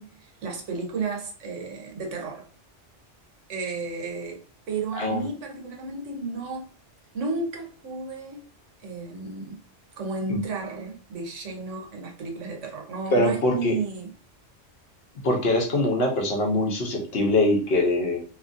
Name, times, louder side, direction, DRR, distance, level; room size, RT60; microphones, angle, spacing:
voice 1, 0.0-2.5 3.5-4.4 4.7-6.7 7.1-8.4 8.8-9.6 10.0-14.1, right 4 dB, 85° right, 1.2 m, -33 dB
voice 2, 13.1-13.8 15.2-18.2, left 1 dB, 60° left, 1.0 m, -23 dB
2.8 x 2.5 x 2.5 m
omnidirectional pair, 1.2 m